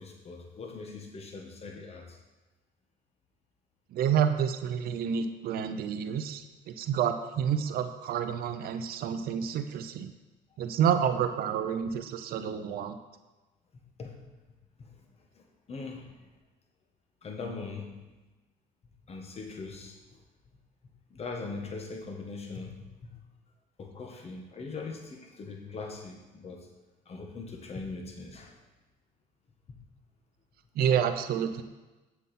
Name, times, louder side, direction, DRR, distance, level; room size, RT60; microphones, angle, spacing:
voice 1, 0.0-2.2 10.7-10.8 14.0-14.2 14.8-14.9 15.3-16.1 17.2-18.0 19.1-20.2 21.1-23.1 23.8-26.7 27.1-28.5 29.7-29.8, left 4 dB, 35° left, 2 dB, 1.4 m, -41 dB
voice 2, 3.9-10.1 10.6-13.0 30.8-31.6, right 8 dB, 65° right, 9 dB, 0.7 m, -29 dB
7.4 x 7.2 x 4.2 m, 1.2 s
cardioid pair, 110°, 17 cm